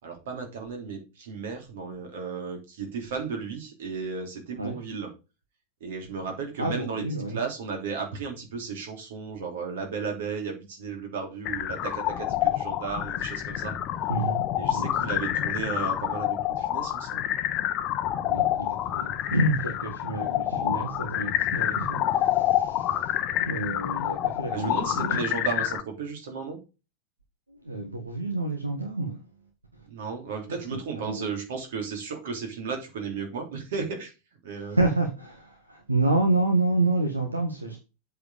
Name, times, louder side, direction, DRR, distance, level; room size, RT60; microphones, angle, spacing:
voice 1, 0.0-5.1 5.8-13.8 14.6-17.3 24.5-26.6 29.9-34.1 34.4-34.8, right 5 dB, 55° right, 3.0 m, -34 dB
voice 2, 6.6-7.4 14.1-14.4 14.7-15.1 18.2-23.1 23.4-25.2 27.5-29.2 30.5-31.3 34.5-37.8, right 2 dB, 80° right, 1.5 m, -28 dB
sound 1, 11.4-25.8, left 12 dB, 35° left, 0.7 m, -28 dB
8.1 x 4.8 x 5.1 m
figure-of-eight pair, 90°, 0 cm